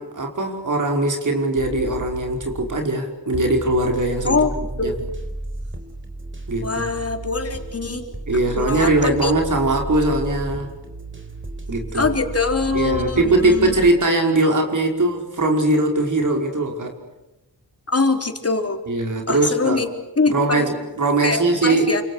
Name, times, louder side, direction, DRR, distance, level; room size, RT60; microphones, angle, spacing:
voice 1, 0.0-4.5 4.8-4.9 6.5-6.9 8.3-10.7 11.7-12.1 12.7-17.0 18.9-19.8 20.3-21.9, right 2 dB, 50° right, 3 dB, 5.4 m, -20 dB
sound 1, 1.6-2.9 3.3-13.9, right 2 dB, 30° right, 4.4 m, -33 dB
voice 2, 6.6-8.1 8.6-9.3 11.9-13.7 17.9-18.8 19.3-19.9 20.2-20.7 21.2-22.0, left 4 dB, 40° left, 5 dB, 4.0 m, -23 dB
30.0 x 27.5 x 6.5 m, 0.99 s
wide cardioid pair, 85°, 38 cm